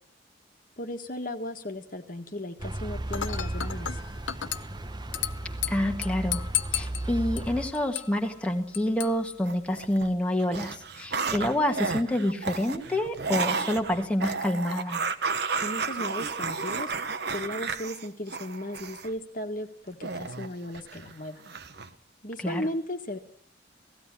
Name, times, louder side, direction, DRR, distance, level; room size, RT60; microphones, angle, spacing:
voice 1, 0.8-4.0 15.6-16.9 17.3-21.4 22.2-23.2, left 1 dB, 45° left, 6 dB, 1.6 m, -36 dB
sound 1, 2.6-7.7, right 1 dB, 20° right, 0.9 m, -35 dB
Dishes pots and pans / Glass, 3.1-10.1, left 11 dB, 75° left, 0.9 m, -36 dB
voice 2, 5.7-6.4 6.7-15.0 22.4-22.7, left 1 dB, 5° left, 2 dB, 1.5 m, -28 dB
sound 2, 9.5-10.1 10.4-19.1 20.0-21.1 21.5-21.9, right 4 dB, 60° right, 1.3 m, -32 dB
17.5 x 16.0 x 9.9 m, 0.63 s
head